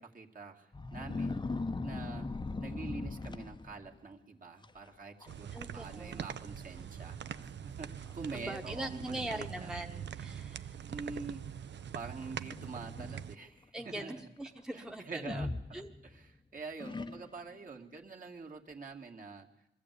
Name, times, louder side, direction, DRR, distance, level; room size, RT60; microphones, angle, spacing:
voice 1, 0.0-1.5 1.8-2.3 2.6-9.7 10.9-11.5 11.9-14.3 14.7-19.5, right 4 dB, 45° right, 1 dB, 2.3 m, -46 dB
sound 1, 0.7-4.0 4.6-4.9 5.2-5.6 5.9-6.0 6.8-6.9 7.4-7.5 8.0-8.4 9.3-9.4 12.2-13.2 15.2-16.3 16.8-17.5, left 3 dB, 25° left, 0.8 m, -39 dB
sound 2, 5.3-13.4, right 8 dB, 65° right, 0.7 m, -43 dB
voice 2, 5.5-6.2 6.8-6.9 8.3-10.8 13.7-15.5 15.7-15.9, right 1 dB, 5° right, 3 dB, 1.2 m, -42 dB
22.0 x 14.5 x 8.4 m, 0.90 s
cardioid pair, 75°, 19 cm